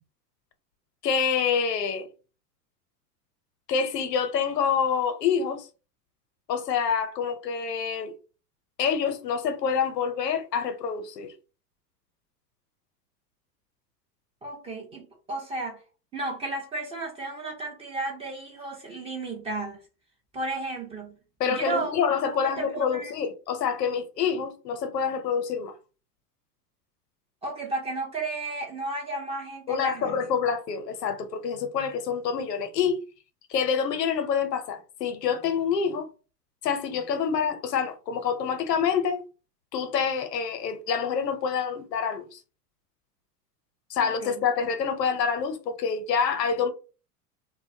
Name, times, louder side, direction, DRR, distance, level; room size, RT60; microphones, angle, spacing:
voice 1, 1.0-2.1 3.7-5.7 6.5-8.1 8.8-11.3 21.4-25.7 29.7-33.0 33.5-36.1 36.6-39.2 39.7-42.4 43.9-46.7, left 6 dB, 85° left, 0.7 m, -27 dB
voice 2, 14.4-15.8 16.1-19.8 20.3-21.2 21.5-22.0 22.2-23.1 27.4-30.2 44.0-44.4, right 2 dB, 15° right, 0.3 m, -33 dB
2.4 x 2.1 x 2.6 m
hypercardioid pair, 90°, 47 cm